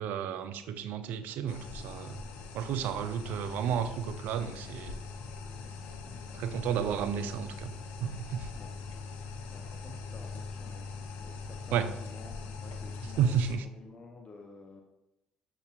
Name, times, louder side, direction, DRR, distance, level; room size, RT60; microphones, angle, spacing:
voice 1, 0.0-2.2 2.5-5.0 6.3-7.7 8.0-8.5 11.7-11.9 13.2-13.7, right 8 dB, 65° right, 10 dB, 0.4 m, -32 dB
sound 1, 1.5-13.6, left 4 dB, 70° left, 0.5 m, -42 dB
voice 2, 6.0-7.4 8.5-9.0 9.5-13.3 13.7-14.8, left 3 dB, 35° left, 2 dB, 0.7 m, -51 dB
6.6 x 2.9 x 2.4 m, 0.90 s
hypercardioid pair, 55°, 3 cm